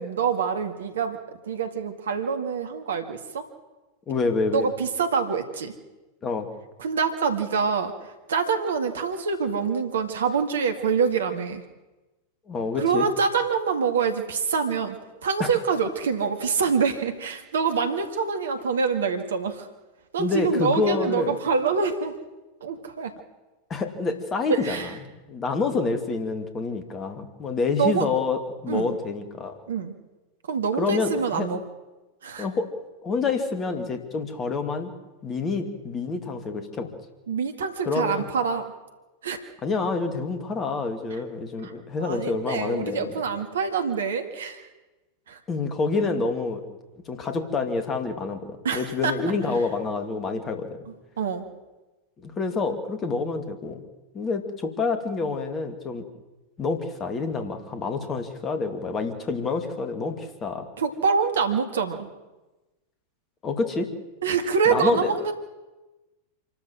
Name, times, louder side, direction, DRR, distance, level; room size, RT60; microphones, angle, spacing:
voice 1, 0.0-3.5 4.5-5.7 6.8-7.9 8.3-11.6 12.8-15.0 15.2-19.7 20.1-22.1 22.6-23.1 24.5-24.9 27.8-28.1 28.7-29.0 29.7-29.9 30.5-31.6 32.2-32.5 37.3-38.7 39.2-39.5 41.6-41.7 42.0-44.7 45.3-45.4 48.6-49.1 51.2-51.4 60.8-62.1 64.2-65.3, right 5 dB, 65° right, 7 dB, 2.0 m, -25 dB
voice 2, 4.1-4.7 6.2-6.5 12.5-13.1 15.4-15.5 20.2-21.4 23.7-29.6 30.8-31.5 32.4-32.7 33.0-34.9 35.2-36.9 37.9-38.3 39.6-43.2 45.5-46.6 47.1-50.8 52.2-53.8 54.1-56.0 56.6-60.7 63.4-63.9 64.6-65.1, left 4 dB, 25° left, 7 dB, 2.5 m, -27 dB
27.0 x 13.0 x 7.5 m, 1.1 s
figure-of-eight pair, 90°, 0 cm